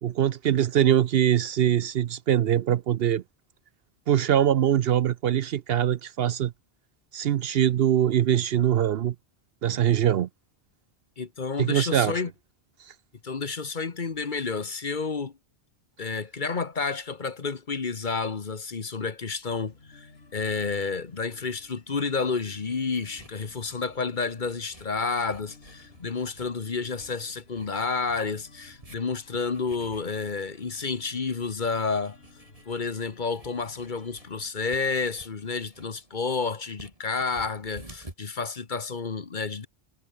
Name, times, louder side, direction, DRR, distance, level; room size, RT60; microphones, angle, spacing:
voice 1, 0.0-3.2 4.1-6.5 7.1-9.1 9.6-10.3 11.6-12.1, right 10 dB, 65° right, 0.8 m, -23 dB
voice 2, 11.2-12.3 13.2-15.3 16.0-32.2 32.7-39.7, left 4 dB, 45° left, 1.3 m, -30 dB
sound 1, 19.5-34.5, left 3 dB, 60° left, 2.9 m, -55 dB
sound 2, 22.5-38.2, right 1 dB, 30° right, 3.5 m, -53 dB
omnidirectional pair, 1.2 m